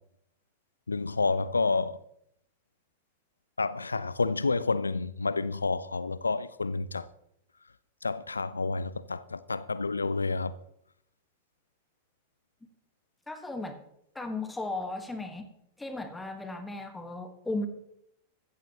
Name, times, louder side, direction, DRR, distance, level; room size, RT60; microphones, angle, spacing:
voice 1, 0.9-2.0 3.6-7.1 8.0-10.5, left 3 dB, 80° left, 0.4 m, -29 dB
voice 2, 13.3-13.8 14.1-15.4 15.8-17.7, left 2 dB, 10° left, 1.6 m, -35 dB
15.0 x 14.0 x 3.0 m
figure-of-eight pair, 90°, 0 cm